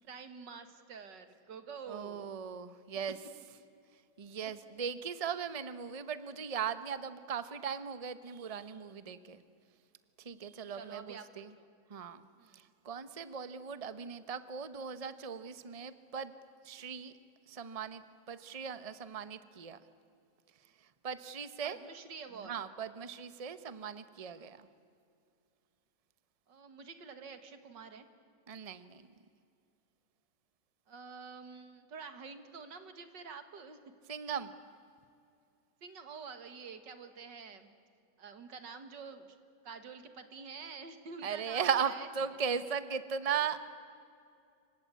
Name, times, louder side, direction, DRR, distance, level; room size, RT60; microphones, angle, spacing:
voice 1, 0.0-2.4 10.8-11.7 12.4-12.6 21.6-22.6 26.5-28.1 30.9-33.8 35.8-37.7 38.2-39.4 39.6-42.1, right 5 dB, 90° right, 9 dB, 2.5 m, -48 dB
voice 2, 1.9-3.2 3.9-9.4 10.2-11.5 11.9-16.3 16.6-17.1 17.5-19.8 20.6-21.8 22.4-24.7 28.5-29.1 34.1-34.5 41.2-43.6, right 7 dB, 25° right, 12 dB, 0.9 m, -38 dB
27.5 x 25.0 x 8.4 m, 2.4 s
omnidirectional pair, 1.9 m